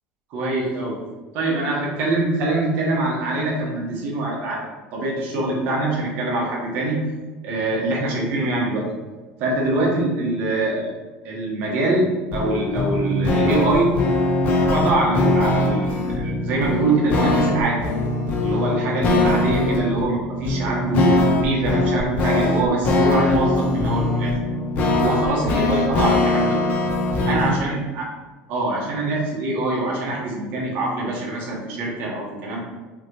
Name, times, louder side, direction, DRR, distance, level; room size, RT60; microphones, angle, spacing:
voice 1, 0.3-1.0 1.3-7.0 7.4-8.9 9.4-10.9 11.2-13.9 14.7-17.9 18.4-24.4 24.9-26.6 27.2-28.0 28.5-32.6, right 2 dB, 50° right, -3 dB, 1.2 m, -24 dB
sound 1, 12.3-27.6, left 2 dB, 35° left, 0.7 m, -21 dB
5.7 x 3.0 x 3.0 m, 1.3 s
cardioid pair, 170°, 4 cm